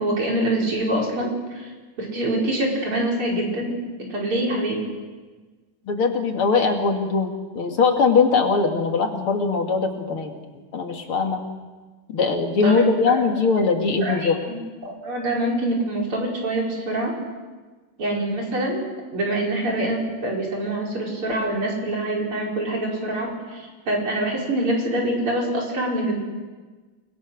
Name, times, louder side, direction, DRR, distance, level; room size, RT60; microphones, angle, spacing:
voice 1, 0.0-1.7 2.0-3.7 4.1-4.8 12.6-13.2 14.0-17.1 18.0-18.8 19.1-26.1, right 1 dB, 90° right, -2 dB, 6.1 m, -25 dB
voice 2, 5.9-10.3 10.7-11.4 12.1-14.4, left 4 dB, 80° left, 3 dB, 3.2 m, -21 dB
29.5 x 21.0 x 6.5 m, 1.4 s
omnidirectional pair, 2.3 m